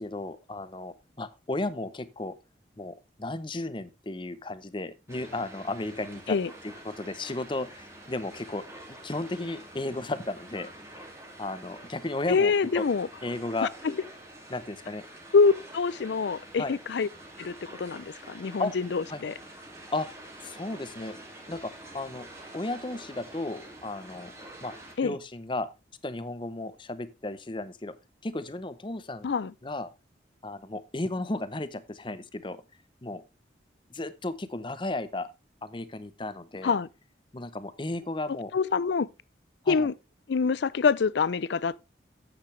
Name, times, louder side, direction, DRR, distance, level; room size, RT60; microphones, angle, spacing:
voice 1, 0.0-2.3 2.8-6.4 6.6-11.1 11.4-12.8 13.2-13.7 14.5-15.1 16.6-16.7 18.6-18.7 19.1-19.2 19.9-20.1 20.4-21.2 21.5-22.3 22.5-24.3 24.6-24.7 25.0-25.7 26.0-27.9 28.2-29.3 29.6-29.9 30.4-32.6 33.0-33.2 33.9-35.3 35.6-36.8 37.3-38.5 39.6-39.9, left 2 dB, 25° left, 0.7 m, -34 dB
sound 1, 5.1-25.0, right 1 dB, 15° right, 2.3 m, -47 dB
voice 2, 12.3-13.1 13.6-13.9 15.3-17.1 17.4-19.3 25.0-25.2 29.2-29.5 36.6-36.9 38.5-39.1 39.7-39.9 40.3-41.8, left 5 dB, 70° left, 0.4 m, -25 dB
9.9 x 8.8 x 3.2 m
head